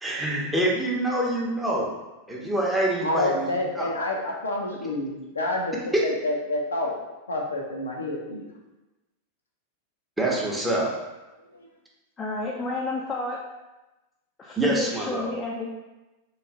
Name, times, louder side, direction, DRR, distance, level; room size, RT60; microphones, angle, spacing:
voice 1, 0.0-1.9 2.3-3.9 5.9-6.0 10.2-10.9 14.6-15.2, right 1 dB, 5° right, -4 dB, 0.8 m, -25 dB
voice 2, 3.0-5.7 6.0-7.0 7.3-8.5, left 2 dB, 75° left, -1 dB, 0.6 m, -28 dB
voice 3, 12.2-13.4 14.4-15.7, left 3 dB, 20° left, -4 dB, 0.4 m, -31 dB
3.1 x 2.5 x 3.5 m, 1.1 s
figure-of-eight pair, 90°, 0 cm